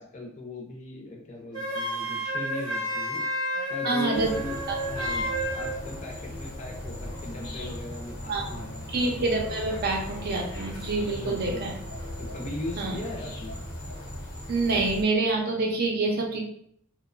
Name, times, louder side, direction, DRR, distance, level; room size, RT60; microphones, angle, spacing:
voice 1, 0.0-4.6 4.9-8.8 11.2-11.7 12.2-13.6, left 1 dB, 35° left, 0 dB, 0.5 m, -39 dB
Wind instrument woodwind instrument, 1.5-5.7, equal, 15° right, 0.8 m, -30 dB
voice 2, 3.8-4.3 4.7-4.8 8.3-8.5 8.9-11.8 12.8-13.0 14.5-16.4, right 3 dB, 45° right, 0 dB, 0.5 m, -27 dB
sound 1, 4.1-15.0, left 1 dB, 90° left, 0.9 m, -37 dB
2.8 x 2.1 x 2.5 m, 0.67 s
head